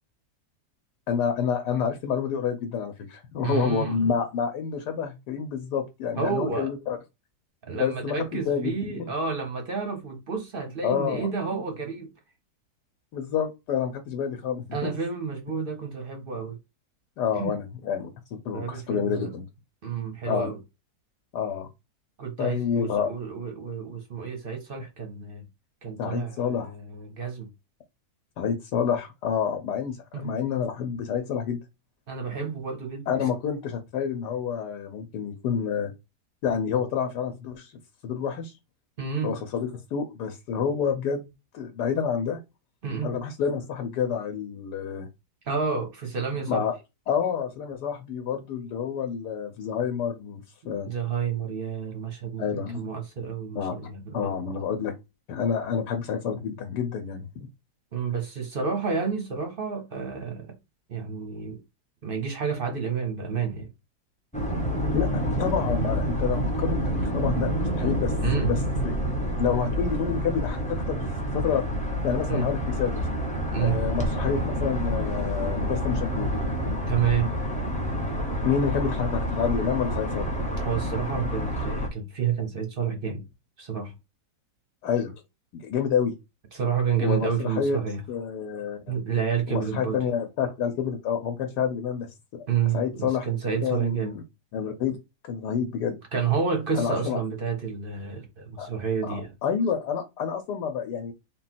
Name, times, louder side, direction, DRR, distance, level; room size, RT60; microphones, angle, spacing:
voice 1, 1.1-7.0 7.7-9.1 10.8-11.3 13.1-14.9 17.2-19.5 20.3-20.5 21.3-21.7 22.4-23.1 26.0-26.7 28.4-31.6 33.1-35.9 36.4-37.7 38.0-38.5 39.2-41.3 41.5-42.4 43.0-45.1 46.5-46.7 47.1-50.9 52.4-52.8 53.5-53.7 54.1-54.9 55.3-57.5 64.9-65.1 65.4-68.9 69.4-71.0 71.3-71.6 72.0-73.2 73.6-76.3 78.4-80.3 84.8-85.2 85.5-86.1 87.0-87.8 88.1-88.9 89.5-93.3 93.6-94.2 94.5-95.0 95.3-96.0 96.7-97.2 98.6-98.7 99.0-101.1, left 7 dB, 80° left, 1.3 m, -28 dB
voice 2, 3.4-4.1 6.2-6.7 7.7-12.1 14.7-16.6 17.3-17.6 18.5-19.3 19.8-20.6 22.2-25.4 25.8-27.5 30.1-30.3 32.1-33.0 39.0-39.4 42.8-43.2 45.5-46.6 50.8-54.5 57.9-60.5 60.9-61.6 62.0-63.7 68.2-68.5 72.3-72.5 73.5-73.8 76.9-77.3 80.6-83.2 83.6-83.9 86.5-88.0 88.9-90.0 92.5-94.1 96.1-99.3, right 6 dB, 50° right, 0.7 m, -30 dB
sound 1, 64.3-81.9, equal, 5° left, 0.5 m, -28 dB
3.8 x 2.3 x 4.1 m
omnidirectional pair, 1.8 m